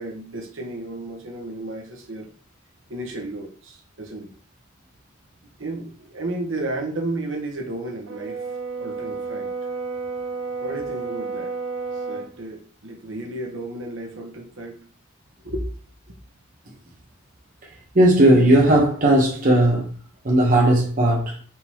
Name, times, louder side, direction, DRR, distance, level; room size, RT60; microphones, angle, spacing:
voice 1, 0.0-2.3 2.9-4.3 5.6-8.4 8.8-9.5 10.6-11.5 11.9-14.9 15.4-15.7, right 2 dB, 65° right, 1.1 m, -33 dB
Brass instrument, 8.1-12.3, right 4 dB, 80° right, 0.7 m, -31 dB
voice 2, 17.9-19.8 20.2-21.4, right 1 dB, 40° right, 0.9 m, -16 dB
3.6 x 2.9 x 4.5 m
head